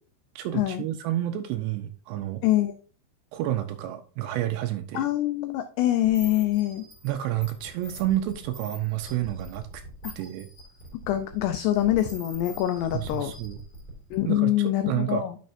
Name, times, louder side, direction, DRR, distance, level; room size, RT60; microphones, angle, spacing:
voice 1, 0.4-2.4 3.3-5.1 7.0-9.7 10.2-10.5 12.9-13.6 14.3-15.2, right 13 dB, 90° right, 7 dB, 2.4 m, -29 dB
voice 2, 2.4-2.8 4.9-6.9 10.0-10.1 11.1-13.3 14.1-15.4, left 13 dB, 90° left, 8 dB, 2.4 m, -25 dB
sound 1, 6.0-14.3, right 1 dB, 30° left, 0.9 m, -44 dB
10.5 x 6.3 x 2.6 m, 0.43 s
omnidirectional pair, 5.6 m